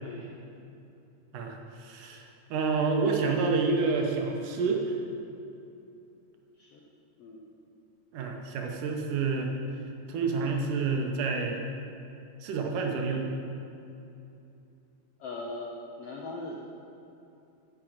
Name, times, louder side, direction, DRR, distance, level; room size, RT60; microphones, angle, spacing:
voice 1, 0.0-0.3 6.6-6.8 7.2-7.5 15.2-15.7 16.0-16.7, left 2 dB, 75° left, -2 dB, 1.4 m, -40 dB
voice 2, 1.3-5.0 8.1-9.5 10.1-11.6 12.4-13.2, right 4 dB, 75° right, 2 dB, 2.3 m, -28 dB
10.0 x 6.0 x 7.6 m, 2.8 s
omnidirectional pair, 4.0 m